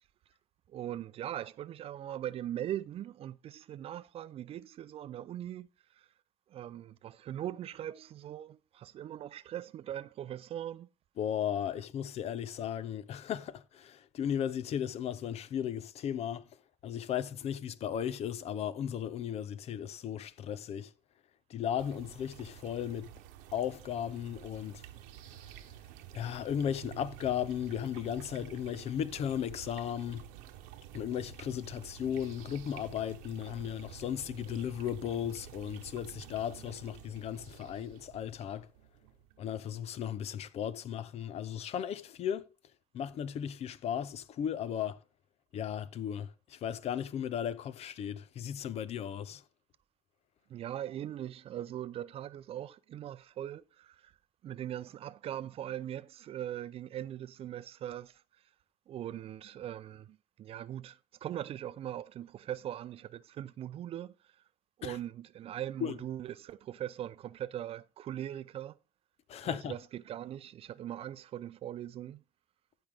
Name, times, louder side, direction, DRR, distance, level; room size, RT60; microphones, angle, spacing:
voice 1, 0.7-5.7 6.5-10.9 50.5-54.0 54.4-58.1 58.9-64.1 64.8-68.8 69.4-72.2, right 11 dB, 50° right, 0.5 m, -40 dB
voice 2, 11.2-16.5 16.8-20.9 21.5-23.1 23.5-24.8 25.3-25.5 26.1-30.3 30.9-38.7 39.4-42.4 42.9-45.0 45.5-49.4 64.8-65.0 65.8-66.0 69.3-69.7, left 9 dB, 55° left, 0.8 m, -36 dB
sound 1, 21.8-39.9, right 12 dB, 85° right, 1.0 m, -50 dB
14.5 x 5.3 x 3.6 m
supercardioid pair, 95°, 13 cm